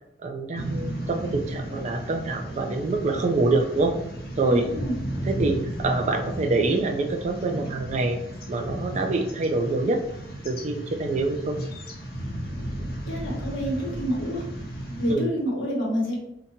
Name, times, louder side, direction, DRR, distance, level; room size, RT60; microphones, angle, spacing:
voice 1, 0.2-3.9 4.4-4.6 5.2-8.2 8.5-10.0 10.4-11.6 15.1-15.3, right 3 dB, 40° right, 5 dB, 0.3 m, -25 dB
sound 1, 0.5-15.1, equal, 55° left, 0.6 m, -34 dB
voice 2, 4.5-4.9 13.1-14.5 15.0-16.2, equal, 85° left, -3 dB, 0.9 m, -27 dB
2.8 x 2.1 x 2.7 m, 0.80 s
head